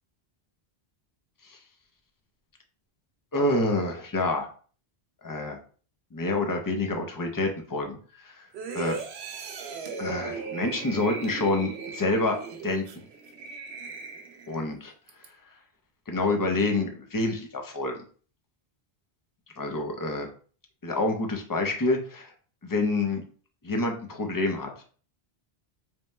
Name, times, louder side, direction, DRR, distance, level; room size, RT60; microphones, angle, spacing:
voice 1, 3.3-4.5 5.2-5.6 6.1-8.0 8.2-8.5 8.7-9.0 10.0-12.4 12.6-12.8 14.5-14.9 16.1-17.9 19.6-20.3 20.8-22.3 22.6-23.2 23.6-24.7, left 2 dB, 25° left, 3 dB, 0.5 m, -27 dB
sound 1, 8.5-14.6 15.1-15.3, right 5 dB, 85° right, 0.9 m, -38 dB
3.4 x 2.2 x 4.0 m, 0.42 s
omnidirectional pair, 1.0 m